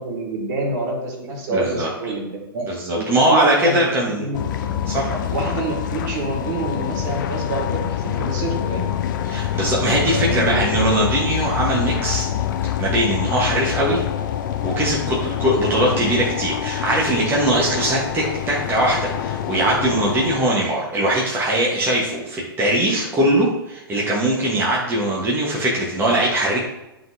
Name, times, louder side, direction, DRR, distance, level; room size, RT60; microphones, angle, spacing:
voice 1, 0.0-2.6 2.9-3.9 4.2-4.4 5.3-8.9 10.1-10.6, right 2 dB, 50° right, 0 dB, 2.0 m, -27 dB
voice 2, 1.5-1.9 2.7-4.3 4.9-5.1 9.2-12.3 12.8-14.0 14.6-26.6, right 1 dB, 15° right, -4 dB, 1.2 m, -21 dB
sound 1, 4.3-20.4, left 10 dB, 55° left, 0.5 m, -25 dB
9.2 x 3.9 x 2.6 m, 0.95 s
hypercardioid pair, 115°, 13 cm